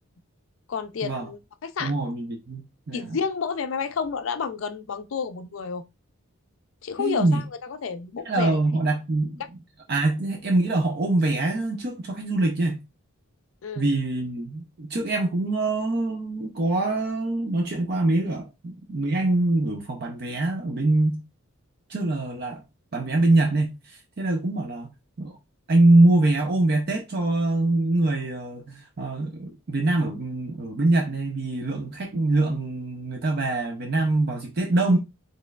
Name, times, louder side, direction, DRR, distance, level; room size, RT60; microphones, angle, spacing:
voice 1, 0.7-1.9 2.9-5.8 6.8-8.6 13.6-13.9, left 5 dB, 65° left, 0.4 m, -30 dB
voice 2, 1.8-2.6 2.9-3.2 7.0-7.4 8.2-9.4 9.9-12.8 13.8-21.2 21.9-22.6 22.9-24.9 25.2-25.4 25.7-35.0, right 2 dB, 45° right, 0.5 m, -24 dB
4.2 x 3.2 x 2.3 m
head